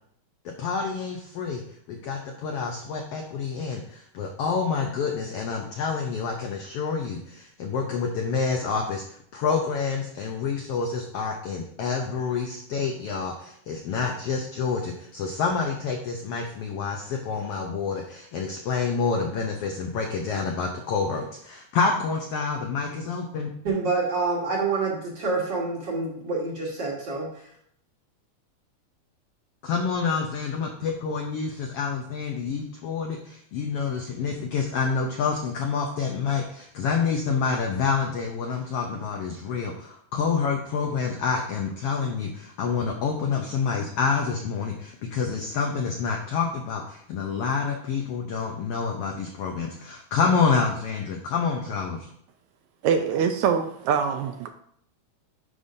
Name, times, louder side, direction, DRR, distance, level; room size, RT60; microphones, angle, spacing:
voice 1, 0.4-1.6 1.9-9.0 9.3-23.6 29.6-52.1, left 5 dB, 80° left, 2 dB, 1.3 m, -28 dB
voice 2, 23.6-27.3, right 3 dB, 45° right, -2 dB, 1.7 m, -27 dB
voice 3, 52.8-54.5, right 7 dB, 80° right, 6 dB, 1.8 m, -24 dB
9.9 x 5.4 x 2.6 m, 0.67 s
omnidirectional pair, 3.5 m